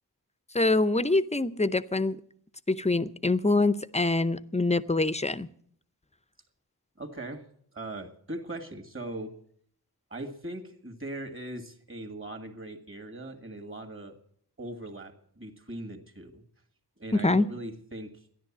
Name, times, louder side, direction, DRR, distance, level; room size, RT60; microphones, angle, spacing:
voice 1, 0.5-2.2 2.7-5.5 17.1-17.5, left 2 dB, 15° left, 15 dB, 0.6 m, -25 dB
voice 2, 7.0-7.4 7.7-9.3 10.1-14.1 14.6-16.4 17.0-18.3, right 1 dB, 35° right, 6 dB, 2.1 m, -40 dB
13.0 x 11.0 x 7.3 m, 0.64 s
wide cardioid pair, 60°, 39 cm